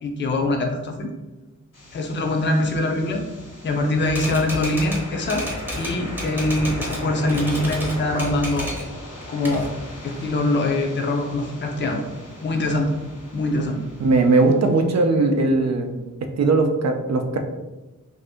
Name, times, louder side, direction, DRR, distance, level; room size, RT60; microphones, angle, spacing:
voice 1, 0.0-1.1 1.9-3.2 3.6-5.4 5.8-8.7 9.3-9.7 10.0-12.0 12.4-13.0 13.3-13.8, left 2 dB, 40° left, 2 dB, 0.4 m, -23 dB
sound 1, 1.7-15.6, left 1 dB, 85° left, 1.1 m, -38 dB
Typewriter, 4.1-7.0 7.3-8.9 9.2-10.3, equal, 5° right, 0.7 m, -32 dB
voice 2, 14.0-16.0 16.4-17.4, right 3 dB, 60° right, 5 dB, 0.4 m, -19 dB
2.6 x 2.5 x 3.5 m, 1.1 s
wide cardioid pair, 115°, 31 cm